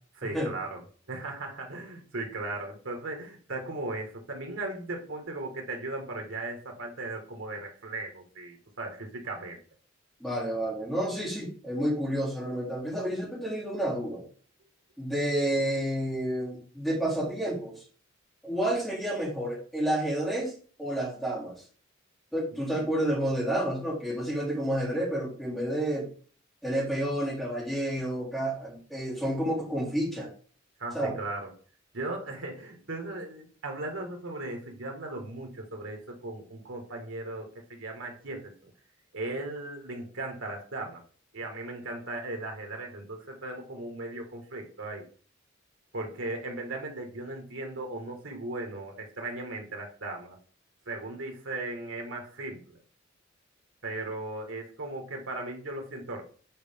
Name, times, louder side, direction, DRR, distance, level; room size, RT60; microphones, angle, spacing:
voice 1, 0.2-0.8 1.1-9.6 30.8-31.5 31.9-38.7 39.1-41.0 41.3-45.0 45.9-50.4 50.9-52.8 53.8-56.2, right 2 dB, 90° right, 2 dB, 1.8 m, -37 dB
voice 2, 10.2-14.2 15.0-17.7 18.4-20.5 20.8-21.5 22.3-26.1 26.6-30.3 30.9-31.1, right 1 dB, ahead, -6 dB, 3.1 m, -30 dB
7.9 x 4.7 x 3.6 m, 0.43 s
head